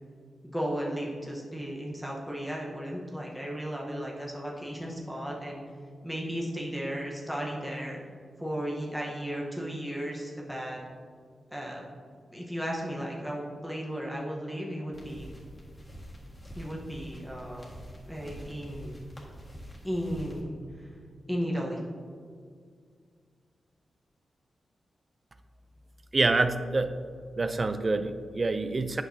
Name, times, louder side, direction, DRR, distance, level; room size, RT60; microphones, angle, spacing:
voice 1, 0.5-5.6 6.0-8.0 8.4-10.8 11.5-11.9 12.3-15.3 16.6-17.7 18.1-18.9 19.8-20.9 21.3-21.8, equal, ahead, -3 dB, 1.0 m, -35 dB
sound 1, 14.9-20.4, equal, 25° left, 1.7 m, -46 dB
voice 2, 26.1-27.0 27.3-29.0, right 3 dB, 35° right, 10 dB, 0.4 m, -26 dB
8.7 x 6.1 x 2.7 m, 2.1 s
cardioid pair, 85°, 0 cm